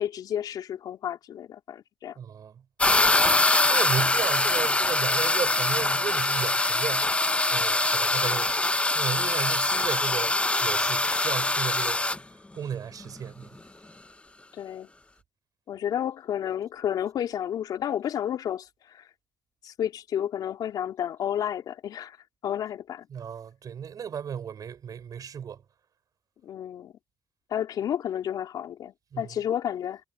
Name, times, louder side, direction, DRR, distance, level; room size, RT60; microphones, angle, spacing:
voice 1, 0.0-2.2 14.5-14.9 15.7-19.1 19.6-22.2 22.4-23.1 26.4-26.9 27.5-30.0, left 10 dB, 70° left, 3.1 m, -31 dB
voice 2, 2.1-2.6 3.6-8.6 8.9-12.0 12.5-13.6 23.1-25.6 29.1-29.3, right 8 dB, 65° right, 5.1 m, -34 dB
sound 1, 2.8-12.2, left 2 dB, 15° left, 0.7 m, -23 dB
supercardioid pair, 50°, 7 cm